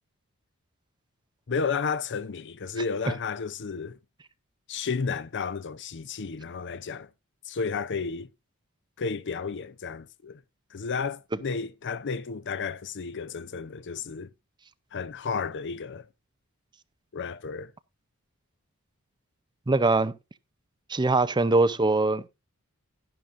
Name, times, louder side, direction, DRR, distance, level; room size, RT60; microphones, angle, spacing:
voice 1, 1.5-4.0 4.7-7.1 7.5-8.3 9.0-10.4 10.7-14.3 14.9-16.1 17.1-17.7, left 5 dB, 55° left, 0.6 m, -32 dB
voice 2, 19.7-20.1 20.9-22.3, right 3 dB, 20° right, 0.6 m, -22 dB
11.5 x 10.5 x 2.6 m
head